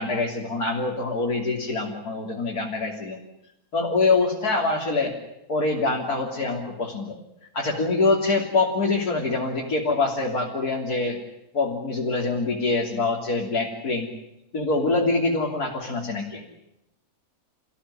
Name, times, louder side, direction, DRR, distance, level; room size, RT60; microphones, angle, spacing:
voice 1, 0.0-3.2 3.7-5.1 5.5-7.2 7.5-11.2 11.5-14.1 14.5-16.4, left 3 dB, 80° left, -2 dB, 3.8 m, -25 dB
30.0 x 16.0 x 9.9 m, 0.89 s
omnidirectional pair, 1.6 m